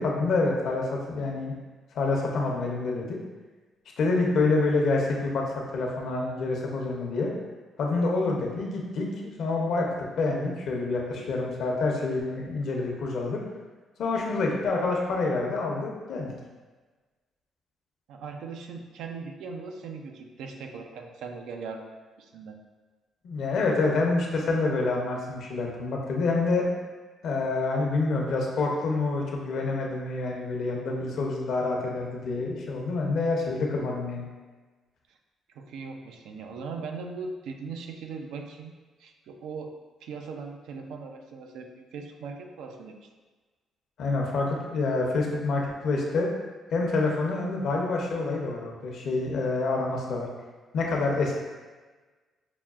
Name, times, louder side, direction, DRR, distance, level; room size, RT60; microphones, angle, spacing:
voice 1, 0.0-1.5 1.9-3.2 4.0-7.3 7.8-9.9 10.2-13.4 14.0-16.3 23.2-26.7 27.2-34.3 44.0-46.3 46.7-50.3 50.7-51.4, left 3 dB, 70° left, -1 dB, 0.7 m, -27 dB
voice 2, 18.1-22.6 35.5-38.7 39.0-39.7 40.0-42.9, right 4 dB, 85° right, 3 dB, 0.4 m, -39 dB
5.7 x 2.2 x 2.4 m, 1.3 s
cardioid pair, 90°, 0 cm